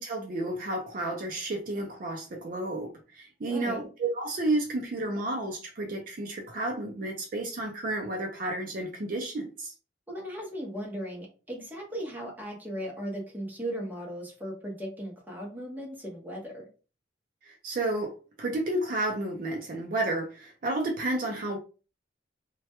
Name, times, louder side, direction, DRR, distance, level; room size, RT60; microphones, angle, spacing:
voice 1, 0.0-9.7 17.4-18.1 18.4-21.6, right 2 dB, 50° right, 2 dB, 0.4 m, -31 dB
voice 2, 3.4-3.8 10.1-16.6, equal, 10° right, -2 dB, 0.7 m, -37 dB
2.2 x 2.1 x 2.8 m, 0.35 s
head